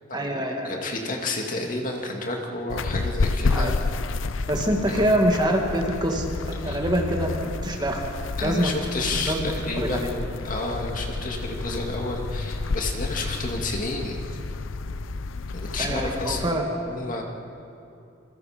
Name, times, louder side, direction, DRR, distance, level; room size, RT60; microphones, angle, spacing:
voice 1, 0.1-0.7 3.5-3.7 4.5-6.3 6.6-8.0 8.4-8.7 9.2-9.5 9.8-10.0 15.8-16.6, right 1 dB, 20° right, 1 dB, 2.0 m, -25 dB
voice 2, 0.6-3.8 4.9-5.0 6.6-6.8 8.4-14.4 15.5-16.6 16.9-17.2, left 2 dB, 40° left, 1 dB, 2.4 m, -31 dB
sound 1, 2.7-16.5, left 3 dB, 75° left, 0.6 m, -30 dB
27.5 x 23.5 x 5.2 m, 2.7 s
head